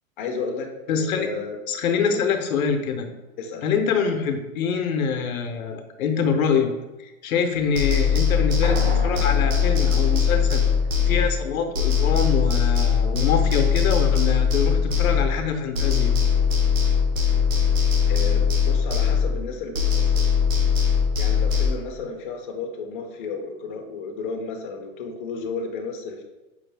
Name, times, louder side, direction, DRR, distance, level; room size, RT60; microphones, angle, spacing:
voice 1, 0.2-1.6 2.1-2.3 3.4-3.7 18.1-20.3 21.2-26.2, left 4 dB, 40° left, 2 dB, 0.5 m, -33 dB
voice 2, 0.9-1.3 1.7-3.1 3.6-6.7 7.0-10.6 11.1-16.2 22.0-22.1, left 6 dB, 85° left, 6 dB, 0.7 m, -25 dB
sound 1, 7.7-11.5 11.7-15.5 15.7-19.5 19.7-21.7, left 7 dB, 65° right, 1.1 m, -21 dB
sound 2, 8.6-12.5, right 2 dB, 40° right, 0.5 m, -37 dB
5.3 x 2.4 x 3.3 m, 1.0 s
hypercardioid pair, 165°, 41 cm